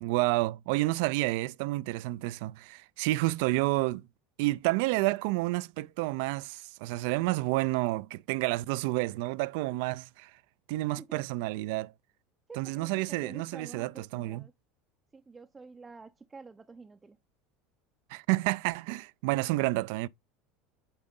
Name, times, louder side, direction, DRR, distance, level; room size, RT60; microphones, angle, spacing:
voice 1, 0.0-4.1 4.4-10.3 10.7-11.9 12.6-14.4 18.1-20.1, right 20 dB, 70° right, 0.3 m, -30 dB
voice 2, 12.5-14.5 15.1-17.2, right 4 dB, 20° right, 0.5 m, -49 dB
8.8 x 3.8 x 3.7 m
supercardioid pair, 100°, 0 cm